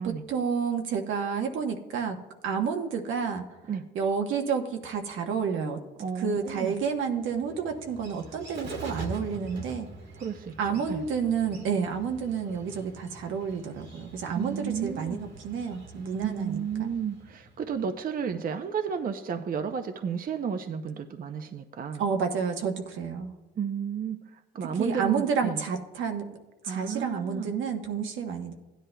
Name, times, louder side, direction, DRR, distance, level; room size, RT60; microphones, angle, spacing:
voice 1, 0.0-2.2 2.4-3.4 3.9-5.8 6.2-9.9 10.6-16.9 22.0-23.3 24.8-26.3 26.6-28.5, right 6 dB, 80° right, 4 dB, 1.0 m, -30 dB
voice 2, 6.0-6.8 10.2-11.0 14.3-15.2 16.2-22.0 23.6-25.6 26.6-27.5, right 7 dB, 45° right, 7 dB, 0.6 m, -32 dB
Bird, 6.5-18.0, right 2 dB, 65° right, 1.7 m, -44 dB
16.0 x 10.0 x 2.2 m, 1.1 s
cardioid pair, 90°, 20 cm